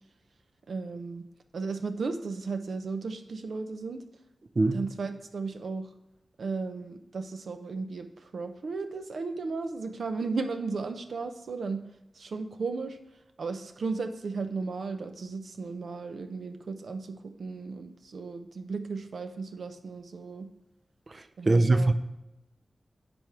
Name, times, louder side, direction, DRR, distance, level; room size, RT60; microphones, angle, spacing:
voice 1, 0.7-1.2 1.5-4.0 4.7-5.9 6.4-11.8 12.2-13.0 13.4-20.5 21.4-21.9, right 4 dB, 85° right, 7 dB, 0.7 m, -35 dB
voice 2, 21.5-21.9, right 2 dB, 45° right, 9 dB, 0.5 m, -21 dB
10.0 x 3.6 x 6.0 m, 0.92 s
wide cardioid pair, 80°, 0 cm